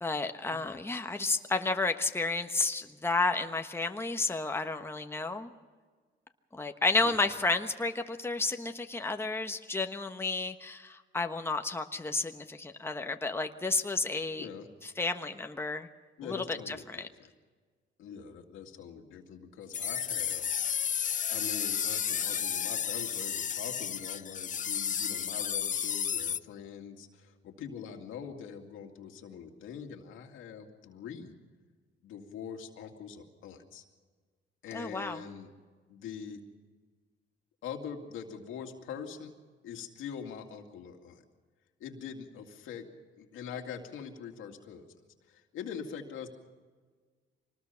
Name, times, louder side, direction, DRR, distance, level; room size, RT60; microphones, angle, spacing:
voice 1, 0.0-5.5 6.5-14.5 14.8-15.9 16.2-17.1 34.7-35.2, left 3 dB, 10° left, 6 dB, 1.2 m, -31 dB
voice 2, 14.4-14.7 16.2-17.3 18.0-31.4 32.0-33.8 34.6-35.5 35.9-36.4 37.6-39.3 39.6-41.2 41.8-42.9 43.1-44.9 45.3-46.3, left 7 dB, 90° left, 3 dB, 2.4 m, -43 dB
sound 1, 19.7-26.4, left 8 dB, 40° left, 0.6 m, -32 dB
24.5 x 19.5 x 5.8 m, 1.5 s
cardioid pair, 90°, 20 cm